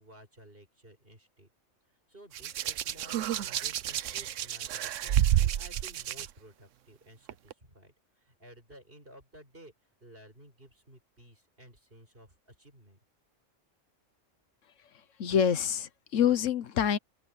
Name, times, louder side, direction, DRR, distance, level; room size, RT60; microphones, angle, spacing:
voice 1, 0.0-1.5 1.9-9.7 10.0-13.0, right 1 dB, 45° right, 8.0 m, -54 dB
Hands, 2.3-6.3 7.3-7.5, right 11 dB, 75° right, 1.0 m, -29 dB
voice 2, 15.2-17.0, left 8 dB, 75° left, 1.3 m, -26 dB
open air
omnidirectional pair, 1.3 m